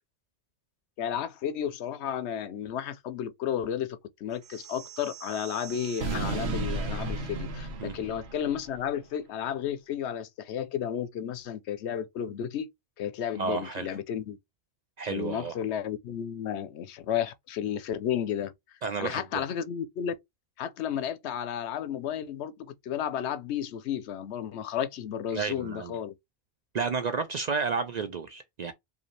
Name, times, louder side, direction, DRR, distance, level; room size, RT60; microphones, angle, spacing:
voice 1, 1.0-12.7 13.0-14.4 15.1-18.5 19.0-20.1 20.6-26.1, left 9 dB, 80° left, 0.9 m, -32 dB
sound 1, 4.4-8.8, right 3 dB, 75° right, 1.1 m, -35 dB
voice 2, 13.4-13.9 15.0-15.5 18.8-19.4 25.3-25.9 26.7-28.7, right 5 dB, 55° right, 0.5 m, -31 dB
4.9 x 2.7 x 3.2 m
omnidirectional pair, 1.1 m